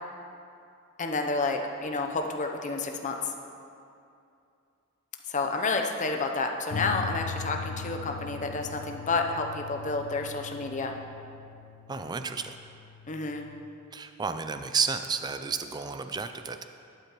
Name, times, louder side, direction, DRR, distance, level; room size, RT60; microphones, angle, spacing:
voice 1, 1.0-3.3 5.3-10.9 13.1-13.5, left 3 dB, 35° left, 3 dB, 0.6 m, -30 dB
sound 1, 6.7-13.6, left 5 dB, 90° left, 0.5 m, -40 dB
voice 2, 11.9-12.6 13.9-16.6, right 5 dB, 20° right, 9 dB, 0.3 m, -31 dB
12.0 x 8.4 x 3.0 m, 2.5 s
head